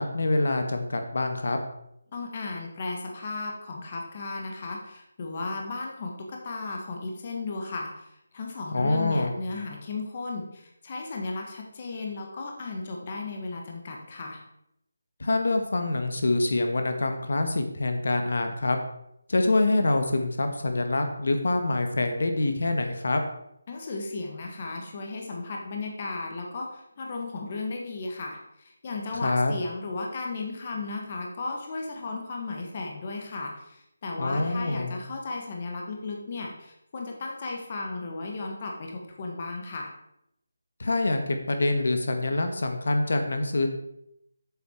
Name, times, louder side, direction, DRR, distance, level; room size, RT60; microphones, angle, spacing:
voice 1, 0.0-1.6 8.7-9.4 15.2-18.8 19.3-23.2 29.2-29.5 34.2-35.0 40.8-43.7, left 2 dB, 65° left, 5 dB, 1.4 m, -25 dB
voice 2, 2.1-14.4 23.7-39.9, left 3 dB, 25° left, 1 dB, 1.3 m, -35 dB
8.6 x 7.3 x 4.4 m, 0.78 s
figure-of-eight pair, 175°, 0 cm